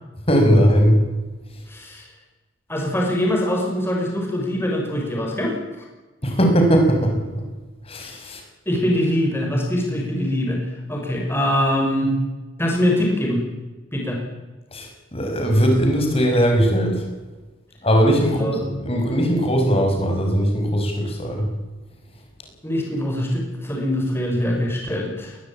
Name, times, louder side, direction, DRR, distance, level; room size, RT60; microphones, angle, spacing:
voice 1, 0.3-1.1 6.2-7.5 7.9-8.4 14.7-17.0 17.8-21.5, equal, 30° left, 3 dB, 5.7 m, -19 dB
voice 2, 1.7-2.1 2.7-5.6 8.7-12.1 12.6-13.4 13.9-14.2 18.4-18.6 22.6-25.4, left 1 dB, 10° left, 0 dB, 5.5 m, -23 dB
21.0 x 20.5 x 8.8 m, 1.2 s
head